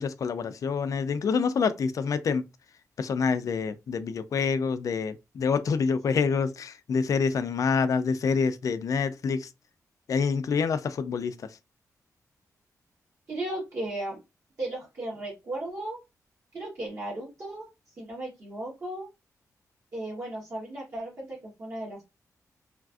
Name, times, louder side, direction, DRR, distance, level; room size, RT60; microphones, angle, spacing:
voice 1, 0.0-2.4 3.0-9.5 10.1-11.3, left 5 dB, 60° left, 0.4 m, -27 dB
voice 2, 13.3-14.2 14.6-16.0 16.5-17.7 18.0-19.1 19.9-22.0, right 1 dB, 45° right, 1.2 m, -35 dB
3.1 x 2.5 x 2.3 m
wide cardioid pair, 135°, 6 cm